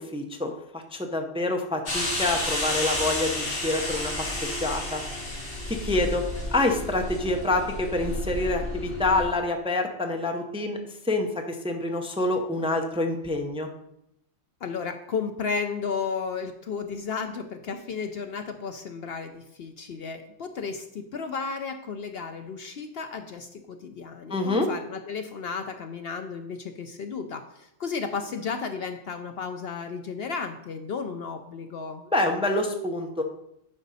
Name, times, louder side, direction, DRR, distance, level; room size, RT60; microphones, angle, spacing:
voice 1, 0.0-4.3 4.6-5.0 5.7-6.2 6.5-10.8 11.0-13.7 24.3-24.7 32.1-33.2, left 2 dB, 5° right, 3 dB, 0.6 m, -27 dB
sound 1, 1.9-9.2, left 1 dB, 85° left, 2.8 m, -31 dB
voice 2, 14.6-32.0, left 5 dB, 60° left, 7 dB, 0.7 m, -33 dB
10.0 x 5.1 x 4.1 m, 0.80 s
omnidirectional pair, 1.3 m